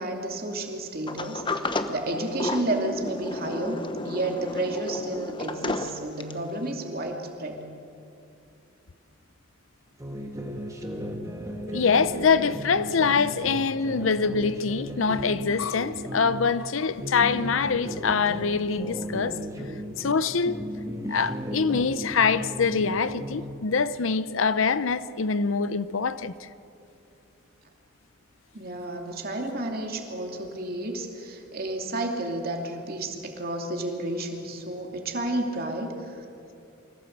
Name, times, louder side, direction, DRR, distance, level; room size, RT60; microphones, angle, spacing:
voice 1, 0.0-7.6 28.5-36.2, right 1 dB, 50° right, 2.7 m, -31 dB
Sliding door, 1.1-6.5, left 2 dB, 25° left, 1.0 m, -32 dB
sound 1, 10.0-16.5 16.9-20.2 20.4-23.6, equal, 15° right, 2.0 m, -35 dB
voice 2, 11.7-19.4 20.0-20.7 21.1-26.5, left 5 dB, 75° left, 0.7 m, -24 dB
24.5 x 16.5 x 8.0 m
head